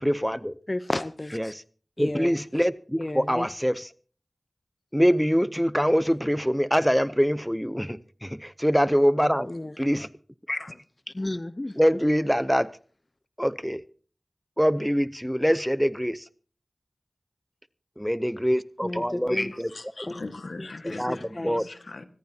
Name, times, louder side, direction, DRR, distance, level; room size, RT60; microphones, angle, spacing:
voice 1, 0.0-0.5 1.3-1.6 2.0-3.9 4.9-9.5 9.8-10.1 11.8-12.7 13.4-13.8 14.6-16.2 18.0-19.7 20.8-21.2 21.4-21.6, equal, ahead, 0.7 m, -24 dB
voice 2, 0.7-1.5 2.0-2.4 3.0-3.5 9.4-9.7 10.5-10.8 11.1-11.7 18.8-19.6 20.1-20.2 20.8-21.7, left 1 dB, 35° left, 0.7 m, -32 dB
voice 3, 19.7-22.1, left 3 dB, 80° left, 1.6 m, -40 dB
25.0 x 14.5 x 2.8 m
wide cardioid pair, 45°, 0 cm